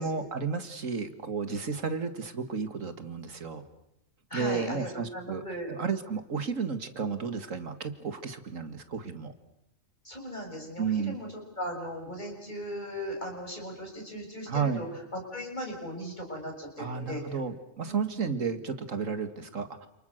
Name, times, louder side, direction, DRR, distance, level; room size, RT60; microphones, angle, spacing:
voice 1, 0.0-3.6 4.3-5.4 5.7-9.3 10.8-11.2 14.5-14.9 16.8-19.9, right 5 dB, 85° right, 10 dB, 2.3 m, -32 dB
voice 2, 4.3-5.7 10.0-11.3 11.6-14.9 15.1-17.2 17.9-18.3, equal, 35° left, 1 dB, 7.3 m, -38 dB
29.0 x 28.5 x 6.6 m, 0.83 s
omnidirectional pair, 1.3 m